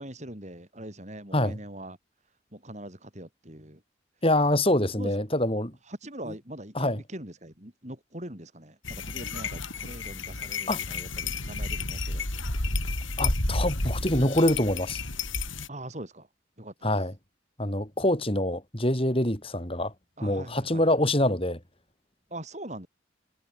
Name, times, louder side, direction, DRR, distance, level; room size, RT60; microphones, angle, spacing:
voice 1, 0.0-2.0 2.5-3.8 5.0-5.1 5.9-12.3 15.7-16.3 16.6-16.9 20.2-21.0 22.3-22.9, right 1 dB, 35° right, 6.2 m, -42 dB
voice 2, 4.2-5.7 6.3-6.4 6.7-7.0 10.7-10.8 13.2-15.0 16.8-17.1 17.6-19.9 20.2-21.6, left 1 dB, 30° left, 6.4 m, -25 dB
Sheeps Eating Grass, 8.9-15.7, left 3 dB, 90° left, 5.7 m, -31 dB
head